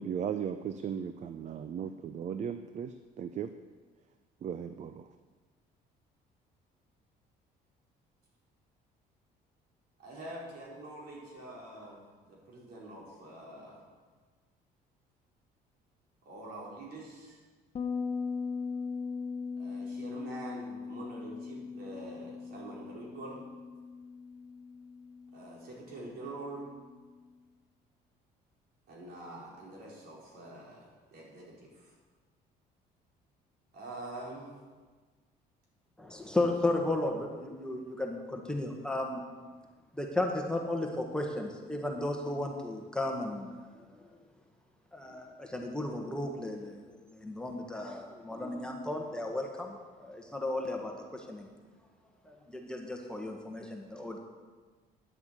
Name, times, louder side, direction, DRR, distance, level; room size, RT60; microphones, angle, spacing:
voice 1, 0.0-3.5 4.4-5.1, right 8 dB, 45° right, 10 dB, 0.5 m, -37 dB
voice 2, 10.0-13.8 16.3-17.4 19.6-23.4 25.3-26.7 28.9-31.9 33.7-34.5, right 2 dB, 65° right, -4 dB, 4.3 m, -45 dB
Bass guitar, 17.7-27.1, left 5 dB, 35° left, 0.9 m, -40 dB
voice 3, 36.0-39.2 39.9-44.1 44.9-51.5 52.2-54.2, left 2 dB, 5° left, 1 dB, 1.5 m, -34 dB
10.0 x 7.0 x 8.2 m, 1.4 s
cardioid pair, 110°, 17 cm